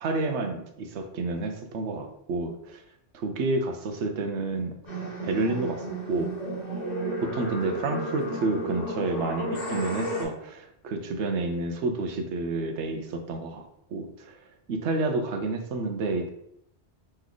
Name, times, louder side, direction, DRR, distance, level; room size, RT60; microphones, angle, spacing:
voice 1, 0.0-2.8 3.2-4.7 5.2-6.3 7.2-13.6 13.9-14.3 14.7-16.3, right 3 dB, 80° right, 6 dB, 0.9 m, -29 dB
sound 1, 4.9-10.2, right 1 dB, 40° left, 1.3 m, -33 dB
3.2 x 3.1 x 3.8 m, 0.75 s
omnidirectional pair, 1.2 m